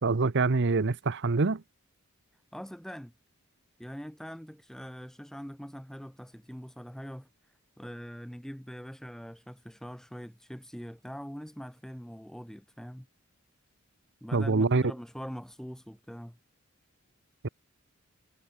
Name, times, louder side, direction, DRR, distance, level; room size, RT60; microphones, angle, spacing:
voice 1, 0.0-1.6 14.3-14.8, right 3 dB, 55° right, 0.8 m, -25 dB
voice 2, 2.5-3.1 3.8-7.3 7.8-13.1 14.2-16.4, equal, ahead, 1.8 m, -43 dB
head